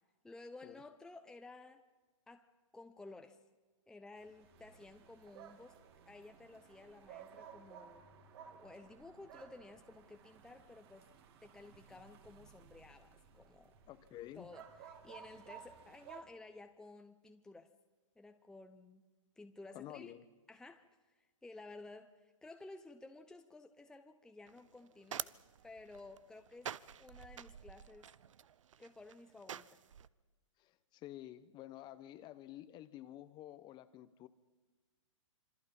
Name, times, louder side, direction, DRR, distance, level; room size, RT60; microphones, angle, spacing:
voice 1, 0.2-1.8 2.3-3.4 3.9-5.8 6.1-8.1 8.5-11.1 11.4-13.7 14.3-17.7 18.2-19.1 19.4-20.1 20.5-25.3 25.6-28.1 28.8-29.8, left 2 dB, 5° left, 6 dB, 0.9 m, -54 dB
sound 1, 4.2-16.2, right 8 dB, 50° right, 3.1 m, -57 dB
voice 2, 13.9-14.5 19.7-20.2 30.6-34.3, left 13 dB, 25° left, 13 dB, 1.2 m, -50 dB
sound 2, 24.5-30.1, right 9 dB, 70° right, 0.8 m, -48 dB
26.5 x 25.0 x 5.5 m, 1.3 s
hypercardioid pair, 135°, 17 cm